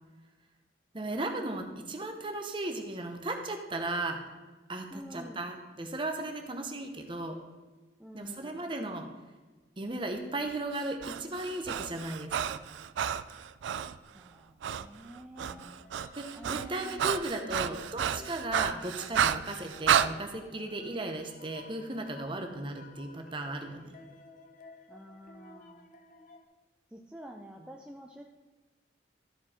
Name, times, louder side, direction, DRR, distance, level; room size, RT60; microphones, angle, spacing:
voice 1, 0.9-4.2 4.7-7.4 8.1-9.1 9.8-12.6 15.5-15.8 16.2-24.0, right 2 dB, 30° right, 4 dB, 0.9 m, -36 dB
voice 2, 4.9-5.5 8.0-8.7 14.1-15.7 16.3-17.8 24.9-25.9 26.9-28.2, right 1 dB, 5° right, 1 dB, 0.4 m, -48 dB
Breathing, 10.7-14.0 14.6-14.9 15.1-20.1, right 9 dB, 85° right, 0.3 m, -31 dB
sound 1, 15.8-26.4, left 3 dB, 45° left, 0.7 m, -55 dB
13.5 x 4.7 x 4.3 m, 1.3 s
head